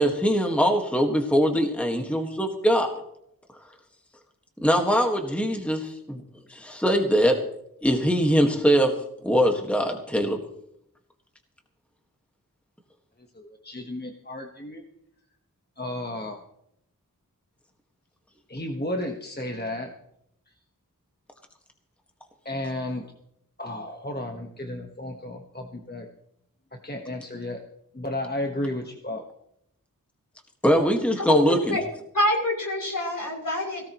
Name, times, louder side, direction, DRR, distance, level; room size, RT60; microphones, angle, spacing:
voice 1, 0.0-2.9 4.6-6.2 6.5-7.4 7.8-8.9 9.2-10.4 30.6-31.8, equal, 5° left, 3 dB, 1.7 m, -22 dB
voice 2, 13.3-14.8 15.8-16.4 18.5-19.9 22.4-23.0 23.6-26.1 26.8-27.6 27.9-29.2, left 1 dB, 30° left, 2 dB, 1.4 m, -33 dB
voice 3, 31.2-31.8 32.1-33.8, left 1 dB, 60° left, -2 dB, 6.8 m, -26 dB
18.0 x 17.0 x 3.1 m, 0.77 s
wide cardioid pair, 50°, 35 cm